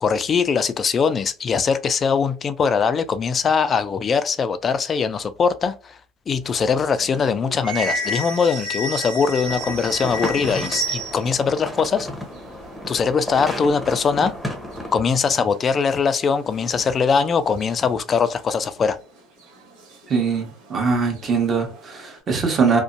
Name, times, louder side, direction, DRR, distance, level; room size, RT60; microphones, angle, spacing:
voice 1, 0.0-6.0 6.3-12.1 12.9-14.3 14.9-19.0, left 5 dB, 35° left, 0.3 m, -21 dB
sound 1, 6.4-11.5 11.7-11.8 12.0-13.4 13.9-14.0 14.2-14.8 15.5-15.6 16.2-17.1 17.6-17.7 18.8-19.0 19.4-20.8 21.2-22.2, right 1 dB, 80° right, 1.0 m, -32 dB
sound 2, 9.4-15.0, left 1 dB, 5° left, 0.7 m, -33 dB
voice 2, 20.1-22.8, right 5 dB, 35° right, 1.0 m, -22 dB
2.6 x 2.1 x 2.5 m
supercardioid pair, 95°, 0 cm